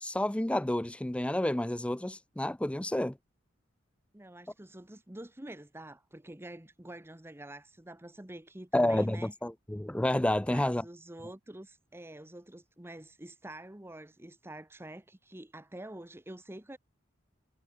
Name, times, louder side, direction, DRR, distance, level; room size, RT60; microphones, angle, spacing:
voice 1, 0.0-3.2 8.7-10.8, left 1 dB, 5° left, 0.4 m, -30 dB
voice 2, 4.1-9.3 10.4-16.8, right 1 dB, 10° right, 1.1 m, -47 dB
head